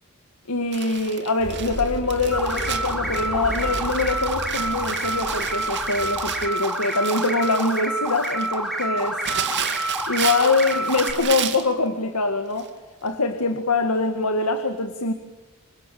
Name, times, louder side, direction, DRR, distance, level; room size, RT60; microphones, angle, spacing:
voice 1, 0.5-9.2 10.1-12.7 13.0-15.1, left 3 dB, 80° left, 7 dB, 2.0 m, -24 dB
Crumpling crinkling, 0.7-11.7 12.6-12.7 13.1-13.2, right 8 dB, 50° right, 2.6 m, -33 dB
sound 1, 1.4-6.5, equal, 55° left, 4.0 m, -34 dB
sound 2, 2.3-11.1, right 1 dB, ahead, 5.1 m, -28 dB
28.5 x 24.5 x 7.0 m, 1.1 s
head